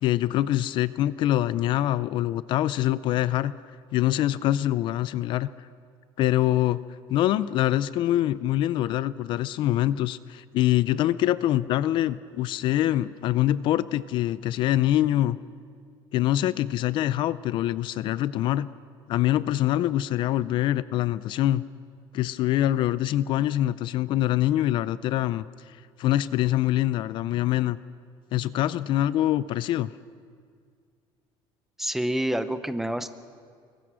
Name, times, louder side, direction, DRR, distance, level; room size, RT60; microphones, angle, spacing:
voice 1, 0.0-3.5 3.9-5.5 6.2-6.8 7.1-15.4 16.1-18.7 19.1-21.6 22.1-25.5 26.0-27.8 28.3-29.9, left 13 dB, 50° left, 17 dB, 0.4 m, -24 dB
voice 2, 31.8-33.1, right 1 dB, 5° right, 11 dB, 0.7 m, -27 dB
24.0 x 22.5 x 6.2 m, 2.1 s
cardioid pair, 165°, 10 cm